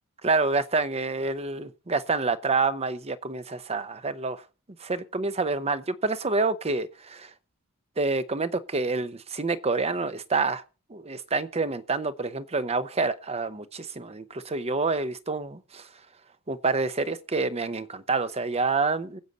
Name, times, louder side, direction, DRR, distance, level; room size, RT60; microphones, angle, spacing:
voice 1, 0.2-4.4 4.8-7.3 8.0-10.6 10.9-15.9 16.5-19.2, right 3 dB, 30° right, 0.8 m, -27 dB
23.0 x 8.0 x 4.1 m
head